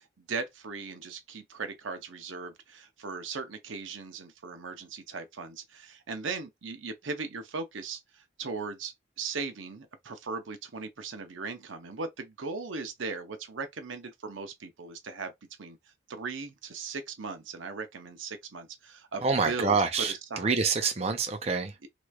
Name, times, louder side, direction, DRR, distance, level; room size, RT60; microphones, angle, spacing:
voice 1, 0.0-15.3 15.6-15.8 16.1-20.6 21.8-21.9, right 4 dB, 90° right, 0.7 m, -38 dB
voice 2, 19.2-20.1 20.4-21.7, right 4 dB, 35° right, 0.5 m, -26 dB
3.1 x 3.1 x 2.4 m
head